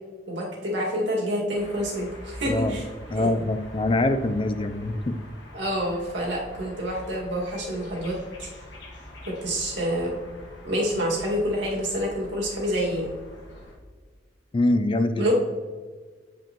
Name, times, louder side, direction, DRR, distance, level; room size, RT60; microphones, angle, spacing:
voice 1, 0.3-2.8 3.2-3.3 5.5-8.5 9.3-10.1 10.6-13.1 15.2-15.3, equal, 90° right, -3 dB, 2.0 m, -27 dB
sound 1, 1.5-13.8, equal, 70° left, 1.3 m, -44 dB
voice 2, 2.5-2.8 3.1-5.2 14.5-15.3, left 2 dB, 30° left, 9 dB, 0.4 m, -24 dB
8.8 x 5.3 x 3.0 m, 1.5 s
head